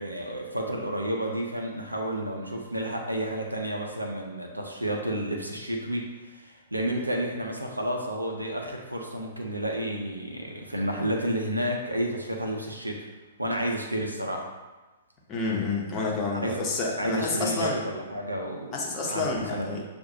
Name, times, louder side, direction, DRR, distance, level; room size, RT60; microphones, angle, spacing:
voice 1, 0.0-13.1 13.4-14.5 16.4-16.6 17.0-18.8 19.0-19.8, right 1 dB, 90° right, 0 dB, 0.7 m, -31 dB
voice 2, 15.3-17.8 18.7-19.9, left 3 dB, 25° left, -2 dB, 1.0 m, -29 dB
6.5 x 2.6 x 2.8 m, 1.2 s
figure-of-eight pair, 110°, 0 cm